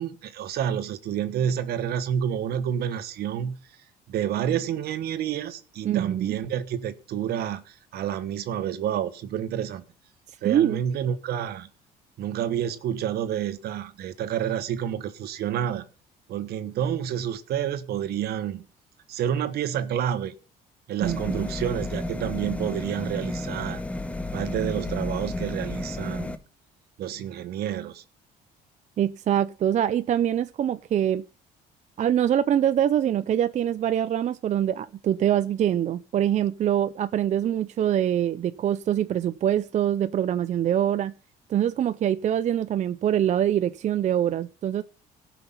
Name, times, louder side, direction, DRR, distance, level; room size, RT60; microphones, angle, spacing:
voice 1, 0.0-3.6 4.1-9.8 10.4-11.7 12.2-15.8 16.3-18.6 19.1-20.3 20.9-23.8 24.3-26.4 27.0-28.0, right 9 dB, 70° right, 1.3 m, -29 dB
voice 2, 5.8-6.4 10.4-10.8 21.0-21.5 29.0-31.2 32.0-41.1 41.5-44.8, right 10 dB, 45° right, 0.5 m, -24 dB
sound 1, 21.0-26.4, left 1 dB, 5° left, 1.0 m, -32 dB
16.5 x 5.9 x 5.7 m
cardioid pair, 110°, 17 cm